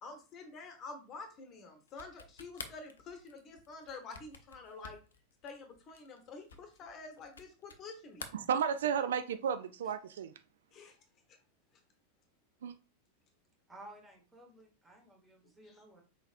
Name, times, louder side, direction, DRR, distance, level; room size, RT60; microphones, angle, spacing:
voice 1, 0.0-5.0 5.4-8.3 9.8-9.9 10.7-11.0 15.6-15.8, left 3 dB, 30° left, 1.1 m, -48 dB
sound 1, 1.9-7.9 8.1-9.1, left 5 dB, 70° left, 0.6 m, -50 dB
voice 2, 8.3-10.3 12.6-12.8, right 8 dB, 60° right, 0.3 m, -33 dB
voice 3, 13.7-16.0, right 1 dB, 10° right, 1.4 m, -55 dB
4.8 x 3.9 x 2.5 m
figure-of-eight pair, 90°, 0 cm